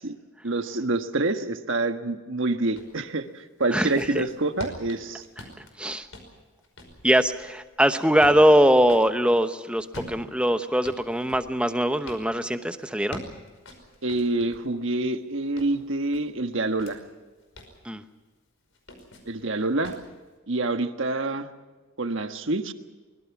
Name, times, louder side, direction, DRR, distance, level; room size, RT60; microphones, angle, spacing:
voice 1, 0.4-5.2 14.0-17.0 19.3-19.9 20.5-21.5 22.0-22.7, right 2 dB, 60° right, 7 dB, 1.4 m, -27 dB
sound 1, 2.8-3.0 3.5-9.1 9.8-12.3 12.8-14.7 15.1-17.0 17.4-17.8 18.7-19.4 19.8-20.1, left 1 dB, 65° left, 5.4 m, -44 dB
voice 2, 3.7-4.2 5.8-6.1 7.0-13.2 17.8-18.0, equal, 5° right, 8 dB, 0.9 m, -22 dB
24.0 x 22.0 x 6.0 m, 1.3 s
head